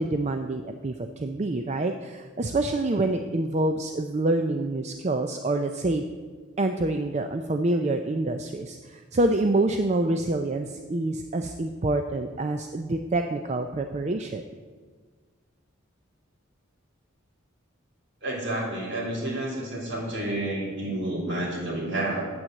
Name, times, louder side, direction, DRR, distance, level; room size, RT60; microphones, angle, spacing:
voice 1, 0.0-6.0 6.6-14.4, right 2 dB, 35° right, 6 dB, 0.5 m, -26 dB
voice 2, 18.2-22.3, right 1 dB, 60° right, -3 dB, 3.6 m, -30 dB
9.0 x 7.9 x 7.6 m, 1.6 s
head